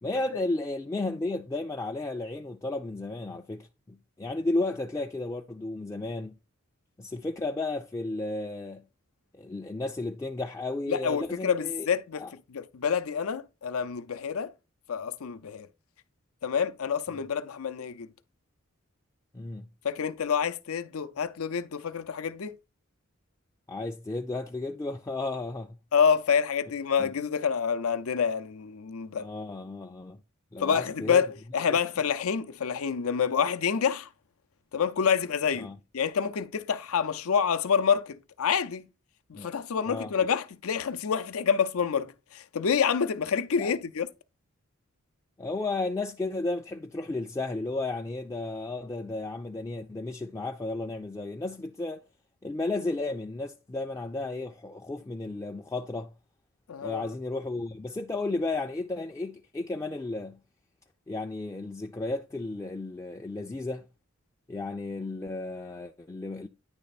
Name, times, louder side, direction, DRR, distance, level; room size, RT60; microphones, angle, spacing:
voice 1, 0.0-6.3 7.0-8.8 9.3-11.9 12.1-12.3 19.3-19.7 23.7-25.8 27.0-27.1 29.2-30.2 30.5-31.3 31.7-31.8 35.6-35.8 39.3-39.5 39.9-40.1 43.6-43.7 45.4-52.0 52.4-56.1 56.8-60.4 61.1-63.9 64.5-66.5, left 2 dB, 15° left, 0.3 m, -33 dB
voice 2, 10.9-12.2 12.5-14.5 14.9-15.7 16.4-18.1 19.8-22.6 25.9-29.3 30.6-34.1 34.7-35.7 35.9-38.9 39.3-44.1 56.7-57.1, left 7 dB, 90° left, 0.6 m, -27 dB
9.7 x 3.3 x 4.1 m
head